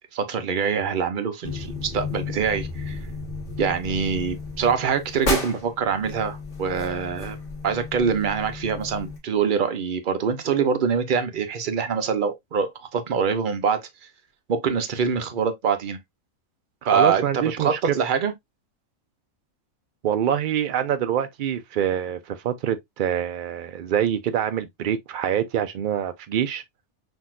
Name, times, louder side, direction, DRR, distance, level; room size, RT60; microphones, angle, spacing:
voice 1, 0.1-3.0 3.6-7.4 7.6-13.8 14.5-16.0 16.9-18.3, right 6 dB, 50° right, 0.6 m, -24 dB
sound 1, 1.4-9.2, left 3 dB, 40° left, 1.3 m, -33 dB
voice 2, 16.8-18.0 20.0-26.6, right 9 dB, 90° right, 0.4 m, -25 dB
5.8 x 2.7 x 2.3 m
omnidirectional pair, 1.4 m